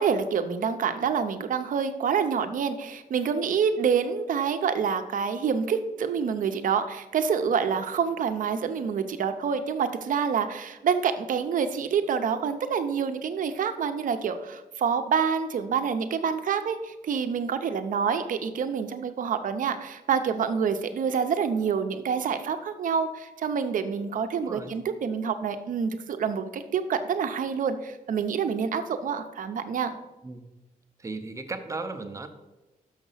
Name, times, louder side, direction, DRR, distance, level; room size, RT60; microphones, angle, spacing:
voice 1, 0.0-30.0, right 6 dB, 65° right, 9 dB, 0.7 m, -27 dB
voice 2, 24.4-24.7 30.2-30.4 31.0-32.3, right 3 dB, 20° right, 7 dB, 0.6 m, -35 dB
6.5 x 6.0 x 5.5 m, 1.0 s
wide cardioid pair, 165°, 15 cm